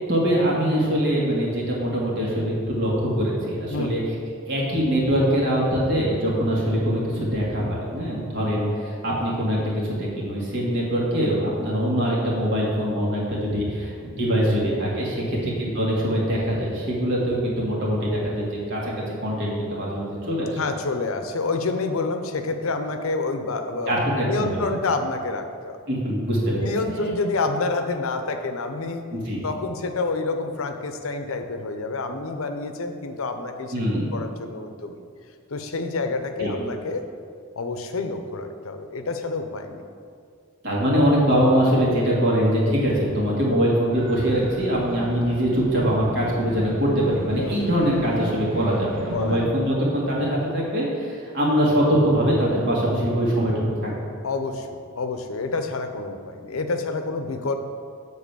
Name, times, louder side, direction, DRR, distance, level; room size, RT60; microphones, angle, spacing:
voice 1, 0.1-4.0 4.5-18.9 19.2-20.6 23.9-24.6 25.9-26.6 29.1-29.4 33.7-34.0 36.4-36.5 40.6-53.5 53.8-54.0, equal, 60° right, -5 dB, 2.1 m, -23 dB
voice 2, 20.6-24.0 24.2-25.8 26.6-29.0 29.4-33.7 34.1-35.0 35.5-37.1 37.6-39.9 47.3-47.6 49.1-49.4 54.2-54.7 55.0-57.5, left 3 dB, 80° left, 7 dB, 0.7 m, -28 dB
sound 1, 43.9-49.4, right 2 dB, 85° right, 2.0 m, -38 dB
7.4 x 4.1 x 6.8 m, 2.3 s
head